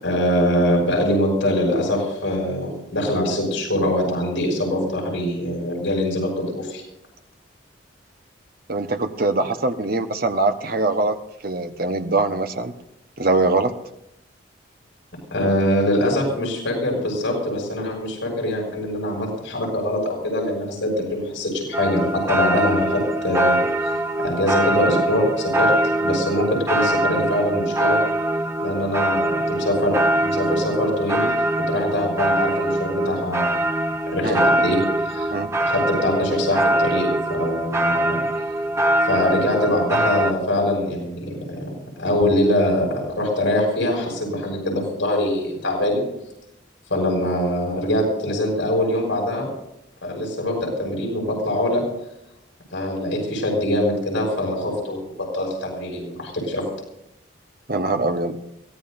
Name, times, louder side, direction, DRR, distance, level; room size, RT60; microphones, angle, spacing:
voice 1, 0.0-6.8 15.3-23.6 24.2-25.7 26.0-28.0 28.6-31.3 31.6-33.5 34.1-34.8 35.1-35.3 35.6-38.2 39.1-41.7 42.0-46.0 46.9-49.5 50.0-51.8 52.7-56.6, left 1 dB, 75° left, -1 dB, 6.4 m, -23 dB
voice 2, 8.7-11.2 11.4-12.7 13.2-13.7 34.2-34.4 35.3-35.5 57.7-58.4, right 2 dB, 50° right, 7 dB, 1.1 m, -22 dB
sound 1, 21.7-40.3, right 1 dB, 15° right, 0.7 m, -23 dB
23.5 x 17.0 x 2.6 m, 0.84 s
head